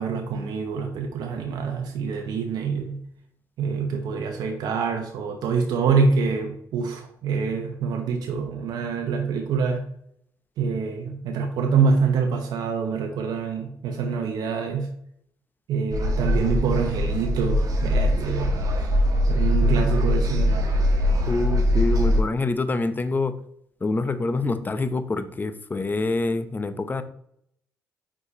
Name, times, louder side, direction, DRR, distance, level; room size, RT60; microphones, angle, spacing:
voice 1, 0.0-3.0 3.6-9.8 10.6-14.9 15.7-18.5 18.8-18.9 19.3-20.6, right 5 dB, 75° right, 3 dB, 0.9 m, -26 dB
sound 1, 15.9-22.2, left 1 dB, 55° right, 1.3 m, -22 dB
voice 2, 21.3-23.3 23.8-27.0, left 3 dB, 25° left, 11 dB, 0.7 m, -26 dB
4.9 x 4.6 x 4.2 m, 0.70 s
supercardioid pair, 65°, 7 cm